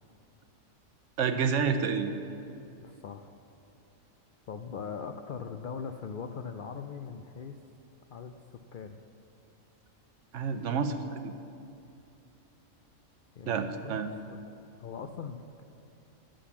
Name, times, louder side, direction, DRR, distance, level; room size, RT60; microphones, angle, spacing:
voice 1, 1.2-2.1 10.3-11.3 13.5-14.1, right 6 dB, 70° right, 8 dB, 1.0 m, -29 dB
voice 2, 2.8-3.3 4.5-7.6 8.1-9.0 13.4-15.6, left 6 dB, 70° left, 6 dB, 0.4 m, -41 dB
10.0 x 7.7 x 7.1 m, 2.7 s
omnidirectional pair, 1.4 m